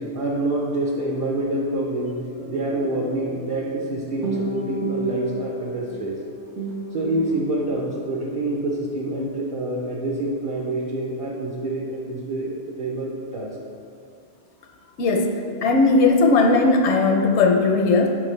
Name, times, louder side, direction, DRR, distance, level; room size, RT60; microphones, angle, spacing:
voice 1, 0.0-2.2 2.5-6.2 6.9-13.6 15.5-15.7, right 1 dB, 40° right, -3 dB, 0.5 m, -27 dB
sound 1, 2.4-8.1, right 1 dB, 80° right, 1.1 m, -32 dB
voice 2, 15.6-18.2, left 3 dB, 80° left, 3 dB, 0.9 m, -17 dB
7.3 x 4.4 x 3.2 m, 2.5 s
omnidirectional pair, 1.2 m